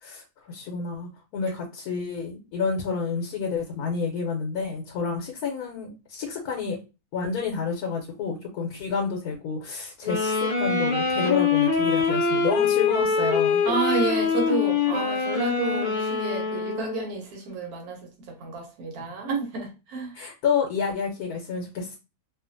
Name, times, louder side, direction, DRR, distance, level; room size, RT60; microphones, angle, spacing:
voice 1, 0.0-6.8 7.1-13.6 20.1-22.0, left 5 dB, 80° left, 1.1 m, -29 dB
sound 1, 10.0-17.1, left 5 dB, 40° left, 0.6 m, -24 dB
voice 2, 13.6-20.1, right 3 dB, 75° right, 1.2 m, -30 dB
2.6 x 2.4 x 2.5 m
omnidirectional pair, 1.6 m